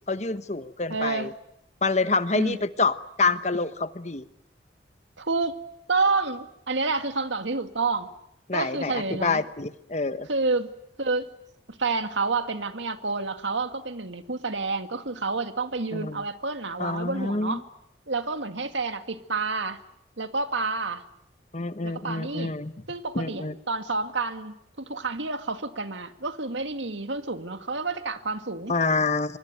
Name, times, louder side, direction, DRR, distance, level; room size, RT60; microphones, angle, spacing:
voice 1, 0.1-1.3 1.8-4.2 8.5-10.3 15.9-16.2 16.8-17.6 21.5-22.7 23.1-23.5 28.7-29.4, left 3 dB, 35° left, 12 dB, 1.1 m, -27 dB
voice 2, 0.9-1.3 2.3-2.6 5.2-5.6 5.9-8.1 8.5-9.4 10.3-10.7 11.0-11.3 11.7-17.7 18.1-19.8 20.2-21.0 21.8-22.6 22.9-28.8, right 3 dB, 80° right, 8 dB, 2.1 m, -29 dB
25.5 x 24.5 x 9.3 m, 0.78 s
head